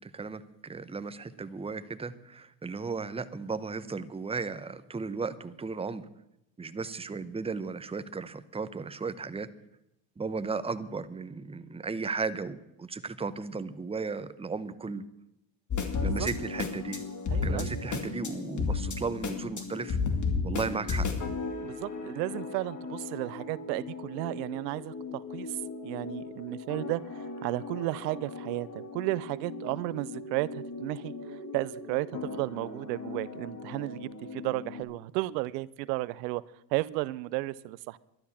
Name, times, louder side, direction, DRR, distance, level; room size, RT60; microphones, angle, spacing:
voice 1, 0.0-6.0 6.6-9.5 10.2-15.0 16.0-17.0 17.4-20.0 20.4-21.1, right 4 dB, 10° right, 13 dB, 0.8 m, -35 dB
sound 1, 15.7-34.8, left 4 dB, 35° left, 2.6 m, -35 dB
voice 2, 17.3-17.8 21.6-25.6 25.8-36.4 36.7-38.0, right 19 dB, 80° right, 20 dB, 0.6 m, -34 dB
12.0 x 11.0 x 7.1 m, 0.85 s
supercardioid pair, 85°, 49 cm